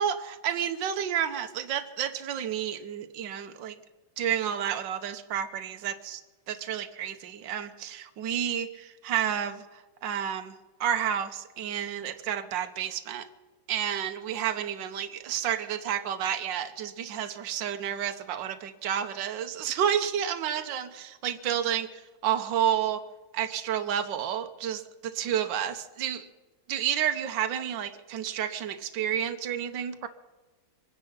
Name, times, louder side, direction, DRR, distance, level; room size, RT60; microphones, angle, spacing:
voice 1, 0.0-3.8 4.2-6.2 6.5-10.5 10.8-13.3 13.7-23.0 23.3-26.3 26.7-30.1, right 9 dB, 70° right, 8 dB, 1.6 m, -30 dB
25.0 x 10.0 x 5.7 m, 1.2 s
omnidirectional pair, 2.1 m